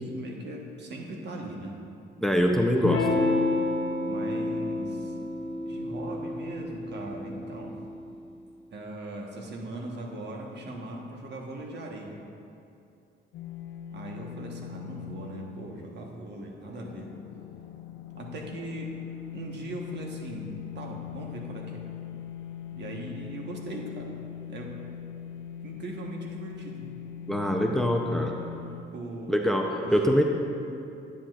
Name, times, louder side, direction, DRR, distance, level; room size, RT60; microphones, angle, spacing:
voice 1, 0.1-1.8 4.0-5.1 5.6-7.7 8.7-12.2 13.9-17.1 18.2-19.0 19.3-21.8 22.7-24.1 24.5-24.7 25.6-26.9 28.9-30.0, right 2 dB, 60° right, 0 dB, 1.3 m, -39 dB
voice 2, 2.2-3.1 27.3-28.4 29.3-30.2, equal, ahead, 2 dB, 0.6 m, -24 dB
Electric guitar / Strum, 2.8-7.9, left 2 dB, 70° left, 1.1 m, -29 dB
sound 1, 13.3-28.8, left 9 dB, 90° left, 0.5 m, -41 dB
10.0 x 9.9 x 2.5 m, 2.7 s
cardioid pair, 90°, 20 cm